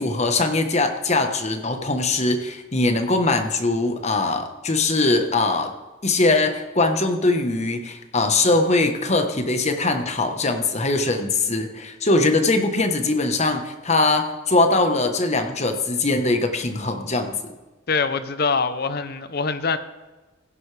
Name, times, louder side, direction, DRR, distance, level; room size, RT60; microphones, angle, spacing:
voice 1, 0.0-5.7 6.0-17.5, left 2 dB, 35° left, 1.2 m, -21 dB
voice 2, 17.9-19.8, left 4 dB, 55° left, 0.7 m, -24 dB
16.0 x 11.0 x 3.4 m
head